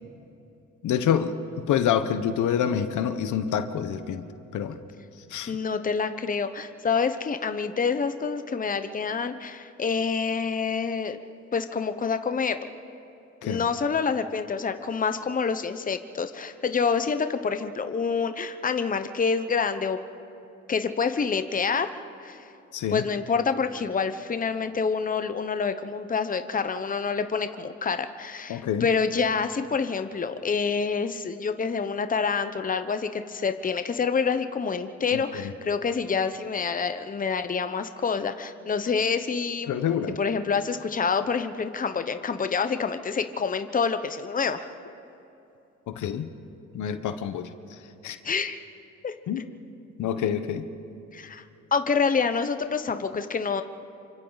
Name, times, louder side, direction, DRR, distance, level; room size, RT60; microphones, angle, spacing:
voice 1, 0.8-1.3 1.7-4.2 4.5-4.8 5.3-5.5 13.4-13.6 22.7-23.0 28.5-28.9 35.1-35.5 39.7-40.1 45.9-46.3 46.7-47.5 48.0-48.2 49.3-49.4 50.0-50.7, left 9 dB, 75° left, 9 dB, 1.2 m, -27 dB
voice 2, 5.5-11.2 11.5-12.7 13.4-20.0 20.7-21.9 22.2-22.4 22.9-39.7 40.2-44.7 48.2-48.6 49.0-49.1 51.1-51.4 51.7-53.6, left 5 dB, 25° left, 9 dB, 1.0 m, -27 dB
28.0 x 25.0 x 4.1 m, 2.8 s
cardioid pair, 90°, 30 cm